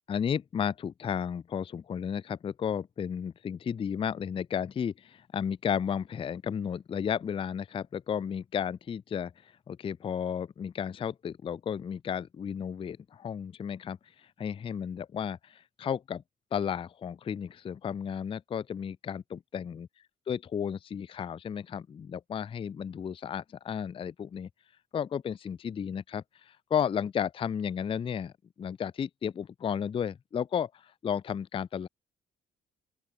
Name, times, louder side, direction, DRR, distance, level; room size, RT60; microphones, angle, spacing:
voice 1, 0.1-9.3 9.7-14.0 14.4-16.2 16.5-19.9 20.3-24.5 24.9-31.9, left 8 dB, 30° left, 0.3 m, -33 dB
open air
cardioid pair, 90°, 20 cm